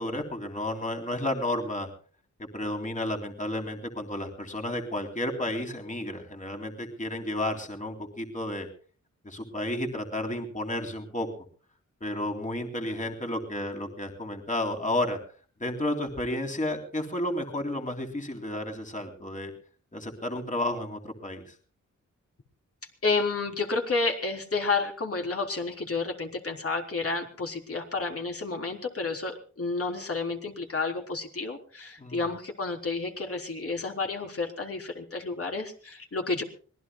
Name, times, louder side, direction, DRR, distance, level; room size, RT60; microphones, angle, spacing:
voice 1, 0.0-1.9 2.4-8.7 9.2-11.3 12.0-15.2 15.6-19.5 19.9-21.5 32.0-32.2, left 1 dB, 25° left, 3 dB, 3.6 m, -32 dB
voice 2, 23.0-36.4, left 3 dB, 45° left, 2 dB, 4.0 m, -30 dB
25.5 x 20.0 x 2.3 m, 0.41 s
wide cardioid pair, 95°, 31 cm